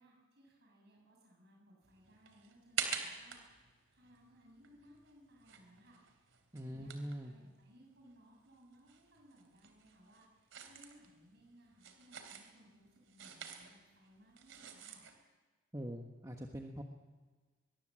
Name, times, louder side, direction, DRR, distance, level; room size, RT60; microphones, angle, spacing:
voice 1, 0.0-6.3 6.6-6.9 7.2-15.0, equal, 55° right, -1 dB, 7.1 m, -63 dB
sound 1, 1.8-8.2 8.4-15.2, right 8 dB, 70° right, 3.2 m, -47 dB
voice 2, 6.5-7.3 15.7-16.8, equal, 15° right, 2 dB, 1.3 m, -43 dB
22.5 x 22.5 x 7.7 m, 1.4 s
head